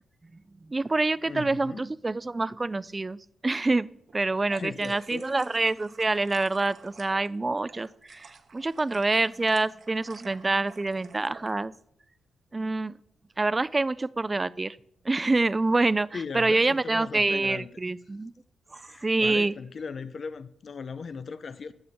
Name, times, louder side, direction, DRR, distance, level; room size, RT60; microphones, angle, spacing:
voice 1, 0.7-3.2 3.4-8.3 8.5-11.7 12.5-12.9 13.4-14.8 15.1-18.3 18.7-19.5, right 2 dB, 25° right, 19 dB, 0.3 m, -26 dB
voice 2, 1.3-1.9 4.5-5.3 16.1-17.7 18.8-21.7, left 5 dB, 50° left, 14 dB, 0.5 m, -38 dB
sound 1, 4.1-11.5, right 5 dB, 60° right, 1.0 m, -51 dB
9.5 x 6.9 x 5.2 m, 0.71 s
cardioid pair, 95°, 0 cm